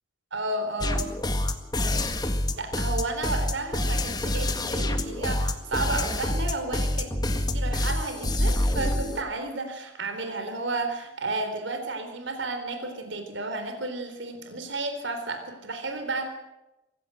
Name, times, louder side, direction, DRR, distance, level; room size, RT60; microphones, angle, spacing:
voice 1, 0.3-1.1 2.6-16.3, right 2 dB, 70° right, 6 dB, 3.8 m, -32 dB
sound 1, 0.8-9.2, left 1 dB, 20° left, 1.8 m, -26 dB
25.0 x 16.0 x 8.0 m, 0.97 s
head